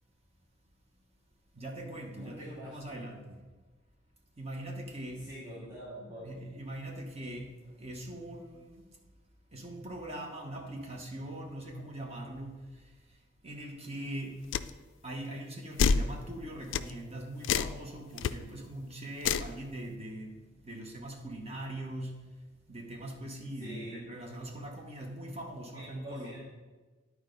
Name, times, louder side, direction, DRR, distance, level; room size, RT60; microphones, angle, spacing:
voice 1, 1.5-3.4 4.4-5.3 6.2-8.9 9.5-14.4 15.0-22.3 22.7-26.4, right 1 dB, 35° right, 1 dB, 1.1 m, -42 dB
voice 2, 2.1-3.0 5.2-6.3 23.6-24.0 25.7-26.4, equal, 20° right, -9 dB, 1.9 m, -45 dB
sound 1, 14.5-14.7 15.8-16.1 16.7-16.9 17.4-17.8 18.2-18.3 19.2-19.5, left 6 dB, 75° left, 0.3 m, -27 dB
10.5 x 4.7 x 3.9 m, 1.3 s
head